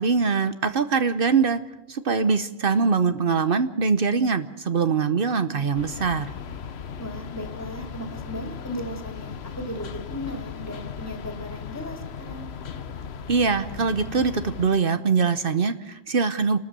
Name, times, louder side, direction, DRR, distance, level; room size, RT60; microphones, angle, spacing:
voice 1, 0.0-1.6 1.9-6.3 13.3-16.6, right 5 dB, 60° right, 11 dB, 1.1 m, -23 dB
sound 1, 5.7-14.7, left 6 dB, 85° left, 1.1 m, -37 dB
voice 2, 7.0-12.5, equal, 15° left, 4 dB, 2.6 m, -36 dB
29.5 x 13.0 x 6.8 m, 0.98 s
omnidirectional pair, 1.1 m